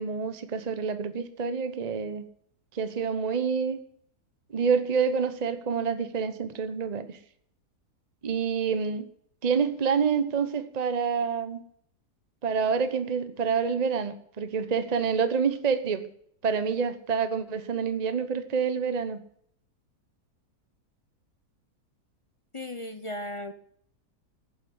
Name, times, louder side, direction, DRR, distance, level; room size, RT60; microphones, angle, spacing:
voice 1, 0.0-2.2 2.7-3.8 4.5-7.2 8.2-9.1 9.4-11.6 12.4-16.1 16.4-19.2, right 6 dB, 30° right, 10 dB, 1.0 m, -27 dB
voice 2, 22.5-23.5, left 1 dB, 30° left, 9 dB, 0.6 m, -36 dB
11.0 x 9.1 x 9.8 m, 0.64 s
omnidirectional pair, 1.7 m